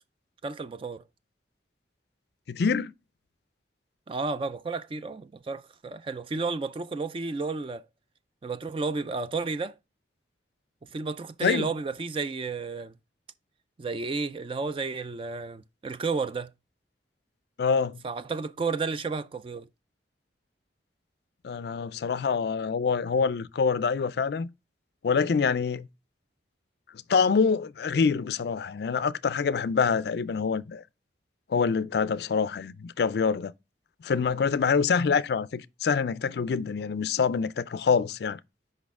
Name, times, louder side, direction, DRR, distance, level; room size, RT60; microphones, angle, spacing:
voice 1, 0.4-1.0 4.1-7.8 8.4-9.7 10.9-12.9 13.8-16.5 18.0-19.7, right 4 dB, 30° right, 0.3 m, -32 dB
voice 2, 2.5-2.9 11.4-11.7 17.6-18.0 21.4-24.5 25.0-25.9 27.1-30.8 31.5-33.5 34.0-38.4, left 5 dB, 60° left, 0.4 m, -26 dB
6.3 x 5.2 x 3.5 m
head